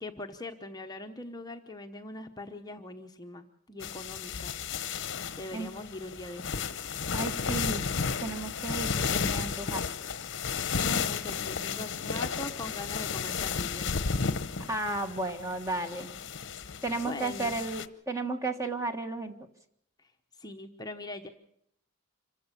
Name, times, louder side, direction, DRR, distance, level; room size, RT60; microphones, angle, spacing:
voice 1, 0.0-4.5 5.4-6.7 10.8-13.9 17.0-17.6 20.0-21.3, left 2 dB, 20° left, 5 dB, 0.9 m, -41 dB
sound 1, 3.8-17.9, left 6 dB, 60° left, 0.9 m, -33 dB
voice 2, 7.1-7.8 8.2-10.1 14.7-16.1 16.8-19.3, right 2 dB, 15° right, 7 dB, 1.5 m, -33 dB
26.0 x 15.5 x 6.8 m, 0.72 s
head